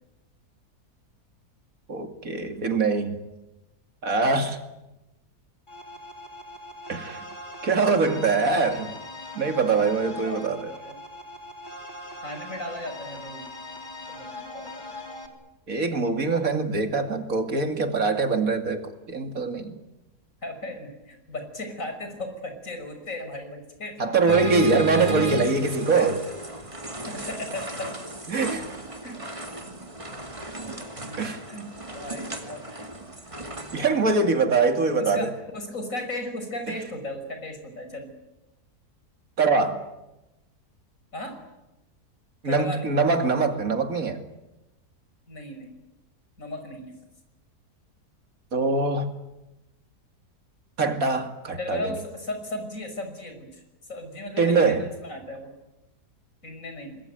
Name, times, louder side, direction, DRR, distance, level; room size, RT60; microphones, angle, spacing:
voice 1, 1.9-3.2 4.0-4.6 6.9-7.2 7.6-8.9 9.3-10.7 15.7-19.8 24.0-26.2 28.3-28.6 31.2-31.4 33.7-35.3 39.4-39.8 42.4-44.2 48.5-49.1 50.8-51.9 54.4-54.9, right 4 dB, 55° right, 6 dB, 2.9 m, -23 dB
sound 1, 5.7-15.3, left 1 dB, 30° left, 3.5 m, -41 dB
voice 2, 10.6-11.0 12.2-13.4 14.1-14.8 20.4-24.8 25.2-25.3 25.9-26.1 27.1-27.9 28.3-28.5 29.0-29.2 31.5-31.7 31.9-32.9 35.0-38.1 41.1-41.4 42.4-43.1 45.3-45.7 46.4-47.0 51.6-53.6 53.9-55.5 56.4-57.0, left 1 dB, 50° left, 6 dB, 6.1 m, -36 dB
sound 2, 24.3-33.9, right 1 dB, 20° right, 2.4 m, -34 dB
26.0 x 21.5 x 9.3 m, 0.98 s
omnidirectional pair, 1.7 m